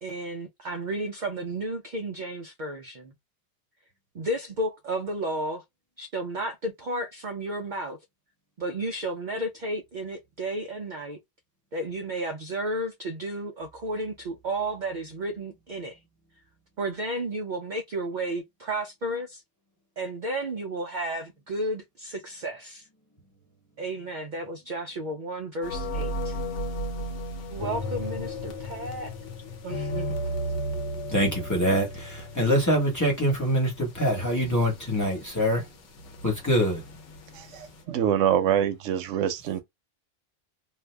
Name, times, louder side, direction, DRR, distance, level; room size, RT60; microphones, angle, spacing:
voice 1, 0.0-3.1 4.1-5.6 6.0-8.0 8.6-11.2 11.7-16.0 16.8-19.4 20.0-22.9 23.8-26.4 27.5-29.1 29.6-30.1, right 1 dB, 55° right, 0.6 m, -32 dB
sound 1, 25.6-37.8, equal, 75° left, 1.1 m, -35 dB
voice 2, 31.1-35.7 36.2-36.8, equal, 15° left, 1.2 m, -24 dB
voice 3, 37.3-39.6, right 9 dB, 85° right, 1.0 m, -25 dB
2.8 x 2.4 x 3.3 m
omnidirectional pair, 1.2 m